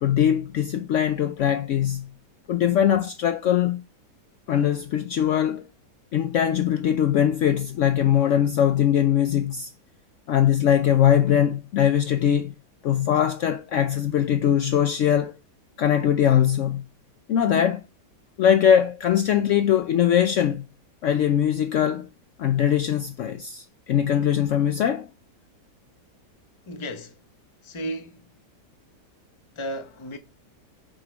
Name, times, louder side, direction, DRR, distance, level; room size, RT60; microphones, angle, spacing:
voice 1, 0.0-2.1 2.5-3.8 4.5-5.6 6.1-9.7 10.3-12.5 12.8-15.4 15.8-16.8 17.3-17.8 18.4-20.6 21.0-22.1 22.4-25.1, left 9 dB, 85° left, 0.6 m, -21 dB
voice 2, 26.7-27.2 27.6-28.3 29.5-30.2, equal, 30° left, 0.5 m, -34 dB
7.6 x 3.1 x 5.0 m
omnidirectional pair, 1.9 m